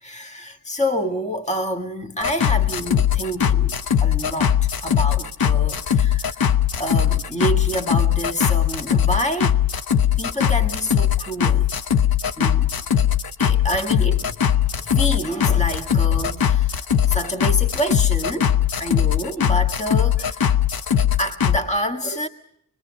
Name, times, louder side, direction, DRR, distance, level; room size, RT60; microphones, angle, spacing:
voice 1, 0.0-6.4 6.8-9.6 10.2-11.7 12.4-12.8 13.4-20.4 21.2-22.3, equal, 20° left, 1.6 m, -28 dB
sound 1, 2.2-21.6, left 9 dB, 90° left, 0.9 m, -20 dB
25.5 x 21.0 x 6.3 m
wide cardioid pair, 110°, 35 cm